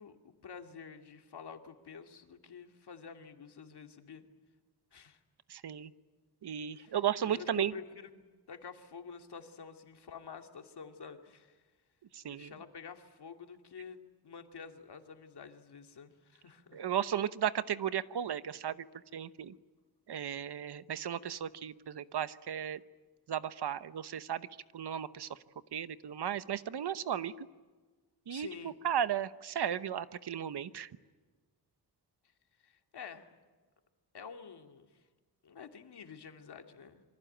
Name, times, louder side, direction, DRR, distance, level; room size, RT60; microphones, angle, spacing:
voice 1, 0.0-4.2 4.9-5.2 6.7-7.0 7.2-11.6 12.3-16.8 28.3-28.8 32.6-33.4 34.1-35.0 35.4-37.0, left 6 dB, 85° left, 6 dB, 2.4 m, -49 dB
voice 2, 5.5-5.9 6.4-7.7 12.1-12.6 16.7-19.6 20.1-22.8 23.3-24.5 24.7-25.4 25.7-27.5 28.3-30.9, right 9 dB, 85° right, 14 dB, 1.0 m, -35 dB
27.0 x 24.5 x 9.1 m, 1.3 s
wide cardioid pair, 175°, 39 cm